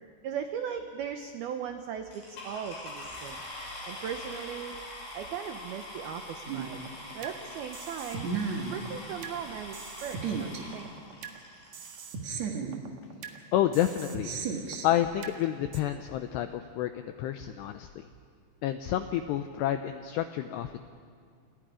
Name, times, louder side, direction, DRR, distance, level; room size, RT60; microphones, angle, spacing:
voice 1, 0.2-3.4 3.9-4.8 5.1-6.8 7.1-8.3 8.7-10.9, right 8 dB, 85° right, 6 dB, 2.2 m, -38 dB
sound 1, 2.1-12.1 12.8-12.9 13.4-13.5 13.7-14.0, left 1 dB, 55° left, 8.7 m, -43 dB
sound 2, 6.5-7.4 7.7-9.4 9.7-11.4 11.7-13.4 13.7-15.4 15.7-15.8, right 5 dB, 60° right, 1.8 m, -36 dB
voice 2, 13.2-17.9 18.6-20.8, left 12 dB, 85° left, 8 dB, 2.4 m, -30 dB
29.5 x 29.0 x 5.0 m, 2.1 s
omnidirectional pair, 5.8 m